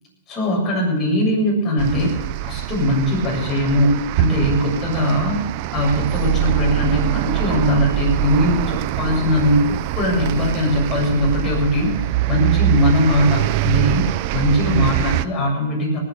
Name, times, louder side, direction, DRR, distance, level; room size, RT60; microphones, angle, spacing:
voice 1, 0.3-2.1 2.4-5.4 5.7-11.9 12.3-16.0, equal, 25° left, -2 dB, 7.4 m, -20 dB
sound 1, 1.8-15.3, right 17 dB, 50° right, 0.6 m, -23 dB
19.0 x 9.1 x 6.9 m, 1.1 s
hypercardioid pair, 130°, 0 cm